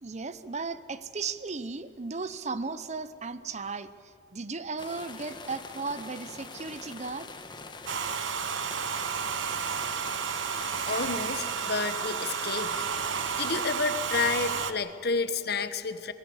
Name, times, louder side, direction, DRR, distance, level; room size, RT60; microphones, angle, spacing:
voice 1, 0.0-3.9 4.3-7.3, right 4 dB, 35° right, 14 dB, 0.8 m, -35 dB
sound 1, 4.8-13.7, left 3 dB, 25° left, 1.4 m, -44 dB
Domestic sounds home sounds, 7.9-14.7, right 6 dB, 85° right, 1.0 m, -31 dB
voice 2, 10.5-12.8 13.3-16.1, left 4 dB, 55° left, 11 dB, 1.2 m, -30 dB
24.5 x 20.0 x 7.9 m, 2.5 s
head